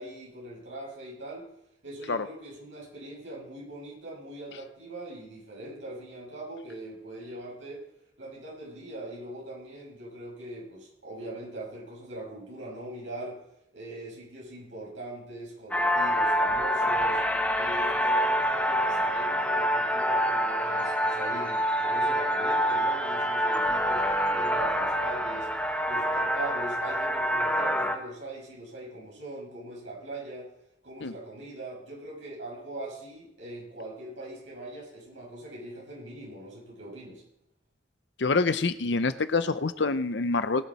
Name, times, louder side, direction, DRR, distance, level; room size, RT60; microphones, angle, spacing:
voice 1, 0.0-1.5 1.8-7.8 8.2-13.4 13.7-17.2 17.5-25.5 25.9-30.5 30.8-37.2, right 1 dB, 90° right, -3 dB, 6.3 m, -41 dB
sound 1, 15.7-28.0, equal, 10° left, 1.1 m, -26 dB
voice 2, 38.2-40.7, left 3 dB, 70° left, 12 dB, 0.7 m, -26 dB
20.5 x 7.4 x 4.2 m, 0.80 s
head